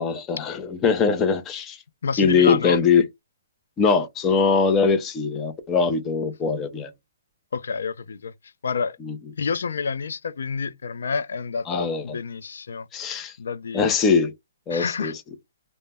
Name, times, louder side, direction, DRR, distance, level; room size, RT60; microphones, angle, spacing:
voice 1, 0.0-1.8 2.2-3.0 3.8-6.9 9.1-9.2 11.7-12.0 12.9-13.3 13.7-14.3 14.7-15.1, left 5 dB, 15° left, 0.4 m, -21 dB
voice 2, 2.0-2.8 7.5-8.3 8.6-9.0 9.4-12.9 13.4-13.9 14.7-15.1, left 5 dB, 80° left, 0.3 m, -28 dB
2.1 x 2.0 x 3.3 m
hypercardioid pair, 170°, 0 cm